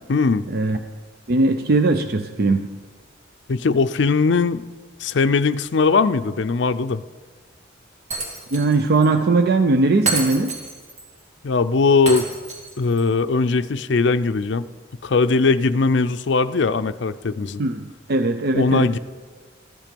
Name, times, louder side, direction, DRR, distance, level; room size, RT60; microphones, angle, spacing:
voice 1, 0.1-0.4 3.5-4.6 5.0-7.0 11.4-12.3 12.8-14.7 15.0-17.6 18.5-19.0, left 4 dB, 60° left, 11 dB, 0.5 m, -19 dB
voice 2, 1.3-2.7 8.5-10.5 17.6-18.9, right 3 dB, 50° right, 8 dB, 0.5 m, -19 dB
Shatter, 8.1-8.8 9.0-9.1 10.1-11.0 12.1-13.0, right 3 dB, 35° right, 2.4 m, -28 dB
14.5 x 12.0 x 5.2 m, 1.4 s
head